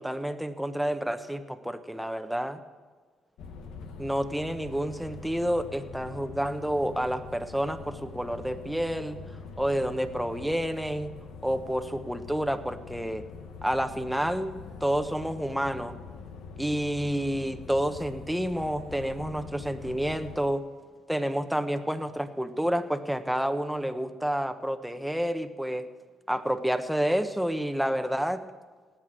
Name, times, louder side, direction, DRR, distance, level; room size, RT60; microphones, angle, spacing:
voice 1, 0.0-2.6 4.0-9.2 9.6-11.1 11.4-13.2 13.6-16.0 16.6-20.7 21.1-25.9 26.3-28.4, equal, 5° right, 9 dB, 1.3 m, -29 dB
sound 1, 3.4-20.4, left 5 dB, 75° left, 1.3 m, -44 dB
18.5 x 8.6 x 7.6 m, 1.5 s
supercardioid pair, 60°, 0 cm